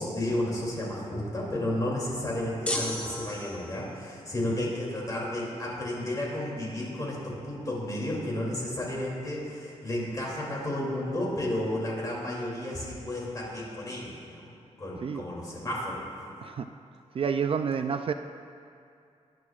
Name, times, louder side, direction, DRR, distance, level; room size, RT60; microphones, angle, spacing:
voice 1, 0.0-14.5 14.8-16.3, left 1 dB, 30° left, -4 dB, 2.8 m, -32 dB
sound 1, 2.7-4.0, left 1 dB, 10° left, 1.0 m, -33 dB
voice 2, 17.1-18.1, right 6 dB, 50° right, 8 dB, 0.4 m, -29 dB
19.5 x 10.5 x 2.4 m, 2.5 s
wide cardioid pair, 165°, 12 cm